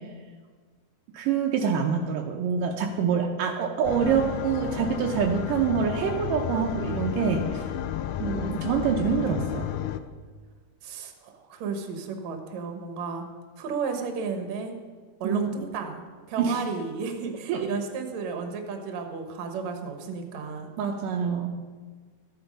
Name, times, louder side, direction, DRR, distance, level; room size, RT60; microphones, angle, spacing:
voice 1, 1.1-7.6 8.2-9.7 15.2-15.7 16.4-16.6 17.5-17.7 20.8-21.5, right 6 dB, 80° right, 2 dB, 2.4 m, -26 dB
sound 1, 3.8-10.0, left 10 dB, 85° left, 1.6 m, -32 dB
voice 2, 10.8-13.3 13.6-14.8 15.2-20.7, right 5 dB, 60° right, 4 dB, 2.3 m, -33 dB
14.0 x 8.9 x 5.3 m, 1.5 s
omnidirectional pair, 3.9 m